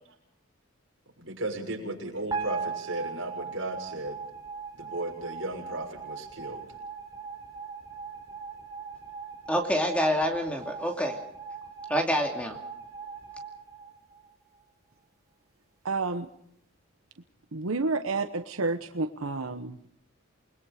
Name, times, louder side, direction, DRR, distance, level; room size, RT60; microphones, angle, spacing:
voice 1, 1.2-4.2 4.8-6.7, right 2 dB, 65° right, 1 dB, 6.5 m, -35 dB
sound 1, 2.3-14.6, right 5 dB, 15° right, 4.4 m, -40 dB
voice 2, 9.5-11.2 11.9-12.6, equal, 5° left, 3 dB, 2.5 m, -27 dB
voice 3, 15.8-16.3 17.5-19.9, right 3 dB, 85° right, 8 dB, 1.1 m, -30 dB
29.0 x 21.0 x 5.0 m, 0.70 s
head